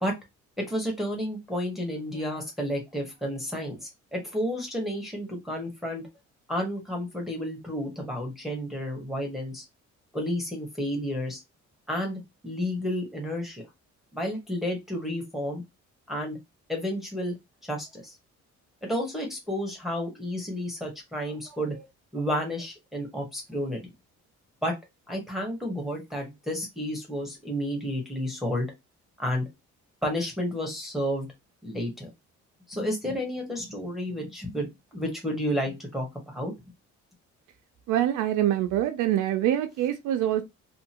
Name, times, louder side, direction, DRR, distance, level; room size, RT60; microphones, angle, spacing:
voice 1, 0.6-6.0 6.5-9.6 10.1-11.4 11.9-13.6 14.1-15.6 16.1-16.4 16.7-17.3 17.6-18.2 18.9-23.8 24.6-24.7 25.1-28.7 29.2-29.5 30.0-31.3 31.6-32.1 32.7-34.7 34.9-36.5, equal, ahead, 1.0 m, -31 dB
voice 2, 37.9-40.4, right 12 dB, 85° right, 0.5 m, -25 dB
2.7 x 2.5 x 2.8 m
cardioid pair, 90°, 30 cm